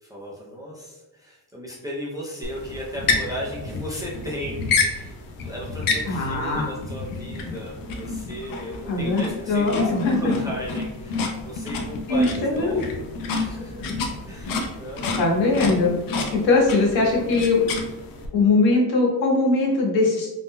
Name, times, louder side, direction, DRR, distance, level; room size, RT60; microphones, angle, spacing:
voice 1, 0.0-9.7 10.1-13.9 14.3-15.1, equal, 10° right, -5 dB, 0.3 m, -35 dB
sound 1, 2.4-18.3, left 4 dB, 55° left, 0.5 m, -29 dB
voice 2, 6.1-6.7 8.9-9.2 9.5-10.2 12.1-12.8 15.2-15.9 16.3-17.7 18.3-20.3, left 3 dB, 85° left, -2 dB, 1.1 m, -20 dB
2.6 x 2.1 x 3.5 m, 1.1 s
cardioid pair, 160°, 43 cm